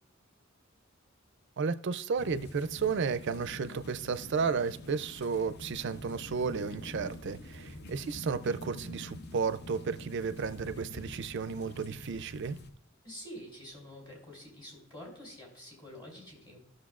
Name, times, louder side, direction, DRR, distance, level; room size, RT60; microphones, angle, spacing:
voice 1, 1.6-12.6, right 5 dB, 60° right, 0.4 m, -33 dB
sound 1, 2.2-12.7, left 1 dB, 55° left, 0.7 m, -46 dB
voice 2, 13.0-16.6, equal, 25° left, 3.1 m, -47 dB
14.5 x 6.4 x 2.4 m
head